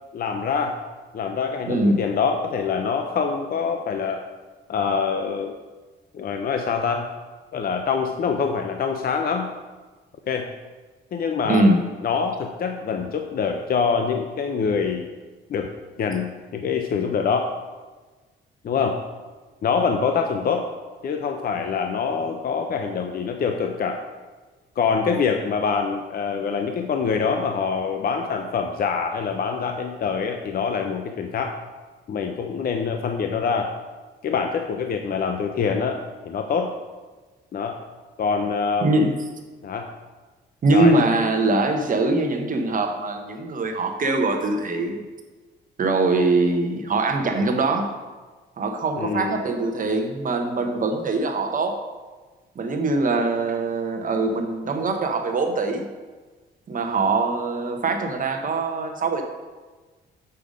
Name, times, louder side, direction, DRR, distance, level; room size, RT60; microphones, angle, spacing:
voice 1, 0.1-0.8 1.1-4.2 4.7-5.6 6.1-7.1 7.5-9.5 10.3-10.5 11.1-11.7 12.0-15.1 15.5-15.7 16.0-17.5 18.6-19.0 19.6-20.7 21.0-24.0 24.8-31.6 32.1-33.7 34.2-36.0 36.3-36.7 37.5-37.8 38.2-39.1 39.6-39.9 40.7-41.0 49.0-49.4, left 5 dB, 50° left, 5 dB, 0.6 m, -25 dB
voice 2, 1.7-2.0 11.4-11.8 38.8-39.1 40.6-45.0 45.8-47.9 48.6-51.8 52.6-55.9 56.7-59.2, right 2 dB, 45° right, 4 dB, 0.9 m, -22 dB
6.8 x 5.1 x 5.0 m, 1.3 s
cardioid pair, 90°, 20 cm